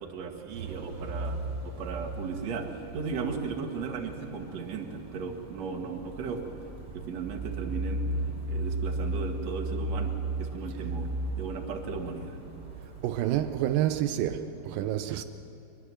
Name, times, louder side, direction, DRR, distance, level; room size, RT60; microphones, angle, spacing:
voice 1, 0.0-1.4 1.6-6.4 6.9-8.1 8.5-12.4, right 5 dB, 55° right, 2.7 m, -36 dB
sound 1, 0.5-14.0, right 2 dB, 20° right, 5.0 m, -36 dB
voice 2, 13.0-15.2, right 12 dB, 85° right, 2.4 m, -28 dB
24.0 x 21.0 x 7.6 m
omnidirectional pair, 3.9 m